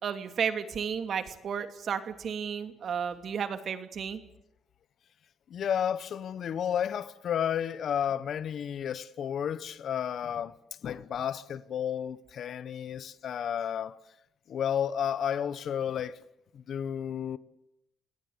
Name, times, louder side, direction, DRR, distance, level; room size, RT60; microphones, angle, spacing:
voice 1, 0.0-4.2, right 7 dB, 60° right, 2.6 m, -33 dB
voice 2, 5.5-10.5 10.8-14.0 14.5-16.2 16.5-17.4, left 9 dB, 65° left, 1.1 m, -32 dB
27.5 x 18.5 x 8.2 m
cardioid pair, 90°, 0 cm